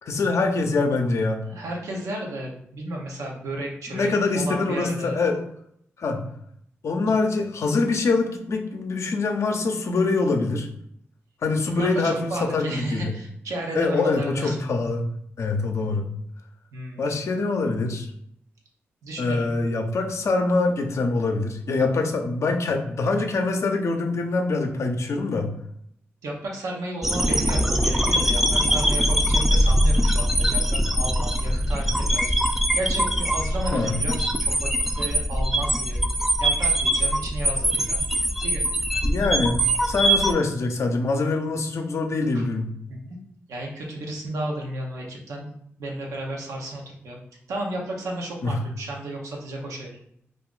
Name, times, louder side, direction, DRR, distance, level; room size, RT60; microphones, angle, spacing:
voice 1, 0.0-1.4 3.9-5.4 6.0-6.2 6.8-10.7 11.4-13.1 13.7-15.0 15.4-16.1 17.0-18.1 19.2-25.5 33.7-34.0 39.0-39.6 39.9-42.7 48.4-48.6, left 3 dB, 65° left, 4 dB, 0.6 m, -24 dB
voice 2, 1.4-4.1 4.3-5.2 11.7-14.6 16.7-17.2 19.0-19.6 26.2-36.0 36.4-38.0 38.4-38.6 42.3-42.5 42.9-43.2 43.5-45.5 45.8-47.2 47.5-50.0, right 1 dB, 85° right, -1 dB, 0.7 m, -33 dB
sound 1, 27.0-40.3, equal, 5° right, 0.5 m, -22 dB
2.5 x 2.4 x 3.7 m, 0.70 s
supercardioid pair, 45°, 5 cm